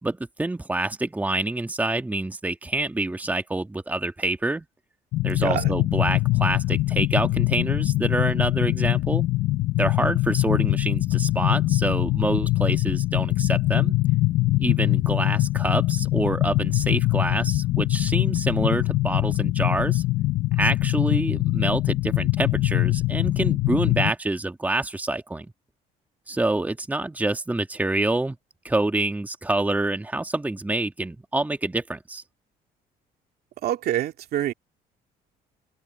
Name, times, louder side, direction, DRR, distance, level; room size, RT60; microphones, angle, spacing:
voice 1, 0.0-4.6 5.2-9.3 9.8-14.0 14.6-20.0 20.6-25.5 26.3-28.3 28.6-32.2, right 2 dB, 10° right, 1.5 m, -27 dB
sound 1, 5.1-24.1, left 18 dB, 65° left, 0.8 m, -23 dB
voice 2, 5.4-5.7 33.6-34.5, right 12 dB, 65° right, 2.5 m, -26 dB
open air
cardioid pair, 110°, 17 cm